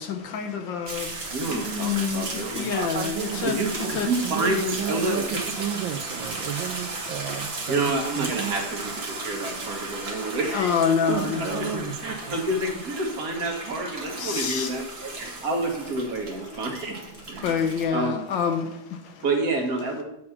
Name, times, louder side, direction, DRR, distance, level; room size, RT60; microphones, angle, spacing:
voice 1, 0.0-3.1 3.4-3.6 3.9-4.1 9.5-9.6 10.0-11.9 14.2-14.7 16.5-16.6 17.4-19.1, left 7 dB, 70° left, 1.3 m, -27 dB
sound 1, 0.9-17.9, right 3 dB, 35° right, 1.3 m, -35 dB
voice 2, 1.3-2.7 3.5-5.4 7.7-10.7 12.0-16.9 17.3-17.6 17.9-18.2 19.2-20.0, right 2 dB, 50° right, 1.4 m, -28 dB
voice 3, 2.7-3.6 3.8-4.0 4.2-5.3 5.6-8.8 11.1-12.4, right 10 dB, 75° right, 1.2 m, -32 dB
8.7 x 4.2 x 5.7 m
omnidirectional pair, 2.3 m